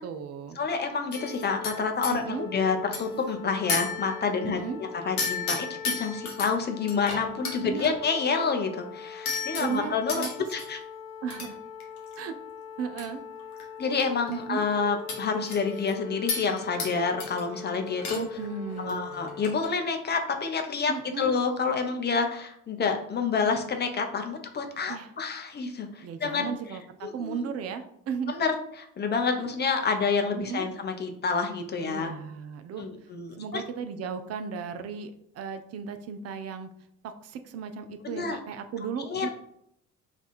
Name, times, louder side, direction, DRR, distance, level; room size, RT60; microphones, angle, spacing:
voice 1, 0.0-0.6 2.1-2.4 4.4-4.8 7.6-7.9 9.6-10.3 11.2-11.6 12.2-12.3 12.8-13.2 14.3-14.6 18.1-19.1 20.9-21.3 24.9-25.1 26.0-28.3 30.4-30.7 31.9-32.9 33.4-36.7 37.0-39.3, right 6 dB, 35° right, 9 dB, 0.5 m, -35 dB
voice 2, 0.6-10.2 10.5-10.8 13.8-18.2 18.8-26.5 27.0-27.5 28.3-32.1 32.8-33.6 38.0-38.4 39.1-39.3, left 5 dB, 25° left, 5 dB, 0.6 m, -28 dB
sound 1, 1.1-2.2 2.9-3.2 3.7-4.4 5.2-6.5 6.9-7.9 9.3-10.7 11.3-11.5 11.8-12.2 13.0-13.1 13.4-14.0 14.3-14.4 15.1-15.9 16.3-16.9 17.2-17.6 17.9-18.4 18.7-18.9 19.3-19.7, left 5 dB, 80° left, 1.0 m, -33 dB
sound 2, 1.1-19.5, left 6 dB, 45° left, 1.1 m, -42 dB
3.4 x 2.4 x 4.2 m, 0.74 s
figure-of-eight pair, 55°, 44 cm